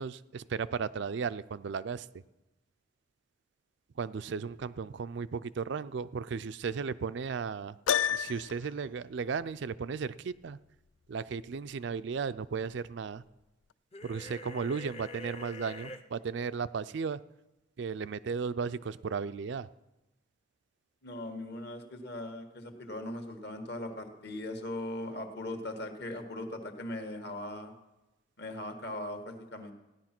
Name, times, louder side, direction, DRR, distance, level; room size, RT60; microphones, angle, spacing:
voice 1, 0.0-2.1 4.0-10.6 11.1-13.2 14.0-17.2 17.8-19.7, right 5 dB, 60° right, 14 dB, 0.4 m, -35 dB
Piano, 7.9-8.7, left 9 dB, 75° left, 0.4 m, -29 dB
sound 1, 13.9-16.0, left 2 dB, 30° left, 0.8 m, -45 dB
voice 2, 21.0-27.7 28.4-29.7, left 1 dB, 55° left, 5 dB, 1.6 m, -39 dB
15.5 x 10.5 x 6.0 m, 1.0 s
head